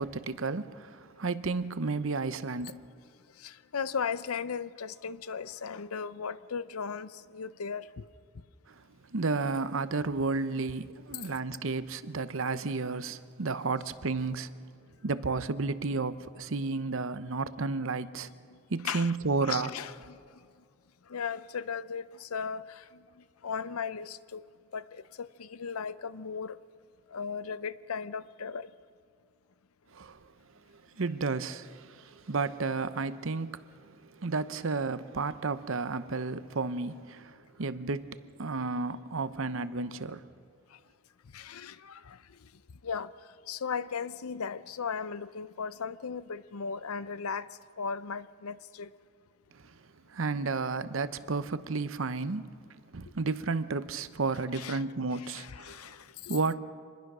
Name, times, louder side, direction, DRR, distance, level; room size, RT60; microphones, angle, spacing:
voice 1, 0.0-2.8 8.7-14.5 15.0-18.3 18.7-19.7 29.9-30.2 30.7-40.3 49.5-49.7 50.1-52.5 52.9-55.9 56.3-56.6, right 3 dB, 65° right, 0.8 m, -32 dB
voice 2, 3.3-8.1 11.1-11.3 18.5-18.6 18.8-19.2 19.4-20.5 21.1-24.5 24.7-26.6 27.1-28.7 40.7-40.8 41.3-42.5 42.8-43.1 43.5-47.5 47.8-48.9 54.5-54.8 55.1-56.3, left 6 dB, 85° left, 0.6 m, -37 dB
26.0 x 21.0 x 6.2 m
head